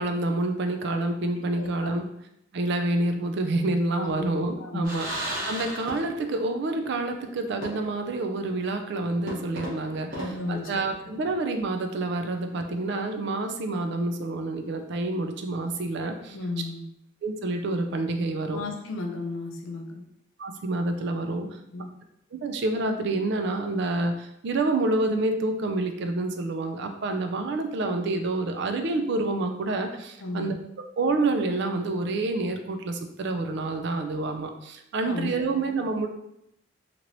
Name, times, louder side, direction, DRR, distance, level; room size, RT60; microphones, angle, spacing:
voice 1, 0.0-2.1 2.5-5.1 5.4-10.2 10.5-16.4 17.2-18.6 20.4-21.6 22.3-30.5 31.0-36.1, right 2 dB, 60° right, 6 dB, 0.4 m, -28 dB
voice 2, 1.6-2.0 4.0-4.3 4.6-5.0 10.1-10.9 16.3-16.8 18.5-20.1 21.7-21.9 30.2-30.5 35.0-35.3, left 3 dB, 70° left, 2 dB, 0.5 m, -34 dB
sound 1, 4.8-6.4 6.7-6.8 7.6-8.1 8.5-8.6 9.3-11.2, right 1 dB, 45° right, 1.0 m, -36 dB
3.1 x 2.9 x 2.6 m, 0.78 s
head